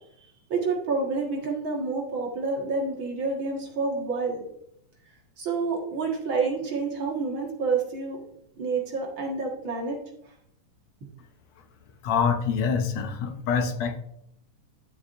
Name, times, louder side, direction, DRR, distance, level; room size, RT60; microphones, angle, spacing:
voice 1, 0.5-4.5 5.4-8.2 8.6-10.0, right 4 dB, 45° right, -1 dB, 2.1 m, -28 dB
voice 2, 12.0-14.0, left 6 dB, 70° left, 5 dB, 2.1 m, -25 dB
11.5 x 7.2 x 2.6 m, 0.75 s
omnidirectional pair, 3.5 m